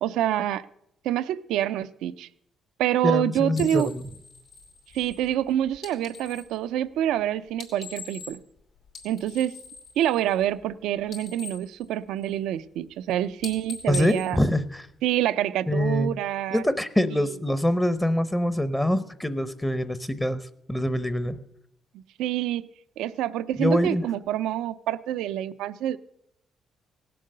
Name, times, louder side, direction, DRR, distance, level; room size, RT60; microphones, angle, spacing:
voice 1, 0.0-0.7 1.0-2.3 2.8-3.9 4.9-8.4 9.0-9.6 10.0-14.4 15.0-16.6 17.1-17.3 21.9-22.7 23.0-26.0, right 12 dB, 90° right, 14 dB, 0.4 m, -27 dB
voice 2, 3.0-4.1 13.9-14.9 15.7-16.1 16.5-20.4 20.7-21.4 23.6-24.1, left 1 dB, 10° left, 13 dB, 0.7 m, -24 dB
sound 1, 3.5-6.6 7.5-8.6 8.8-10.7 11.0-12.6 12.9-13.1 13.4-15.2, left 4 dB, 75° left, 2.9 m, -43 dB
16.5 x 7.6 x 6.6 m, 0.77 s
cardioid pair, 90°, 0 cm